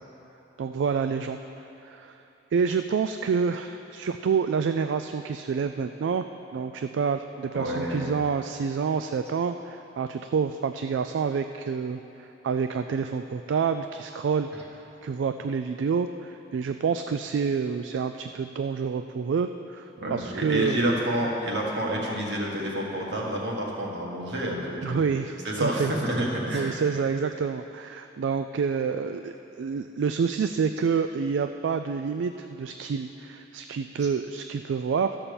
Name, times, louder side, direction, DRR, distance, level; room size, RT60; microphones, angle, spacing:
voice 1, 0.6-1.4 1.8-2.2 2.5-6.3 6.5-14.5 15.0-20.8 24.8-25.9 26.5-35.1, right 6 dB, 85° right, 8 dB, 0.3 m, -28 dB
voice 2, 7.5-8.2 20.0-25.0 25.4-26.8 34.0-34.1, right 1 dB, 65° right, -2 dB, 1.8 m, -29 dB
12.5 x 5.7 x 6.9 m, 3.0 s
head